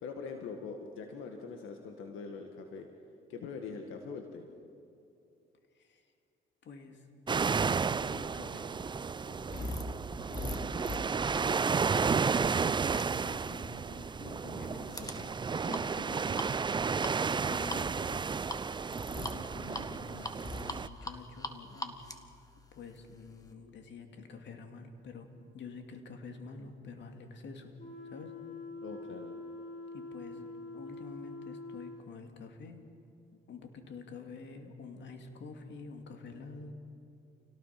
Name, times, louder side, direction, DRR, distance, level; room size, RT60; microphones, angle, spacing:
voice 1, 0.0-2.9 3.3-4.5 28.8-29.4, left 5 dB, 85° left, 3 dB, 1.8 m, -43 dB
voice 2, 6.6-7.0 7.6-8.7 9.3-9.8 10.3-11.4 11.6-15.3 15.6-16.4 17.5-18.2 19.1-22.0 22.7-27.7 28.0-28.3 29.9-30.5 30.7-32.8 33.3-36.7, left 4 dB, 65° left, 5 dB, 2.6 m, -48 dB
sound 1, 7.3-20.9, right 5 dB, 25° right, 0.4 m, -32 dB
sound 2, 8.8-23.5, left 2 dB, 20° left, 1.8 m, -44 dB
sound 3, 27.8-32.0, left 2 dB, 45° left, 6.0 m, -45 dB
28.5 x 18.0 x 6.0 m, 2.6 s
cardioid pair, 90°, 20 cm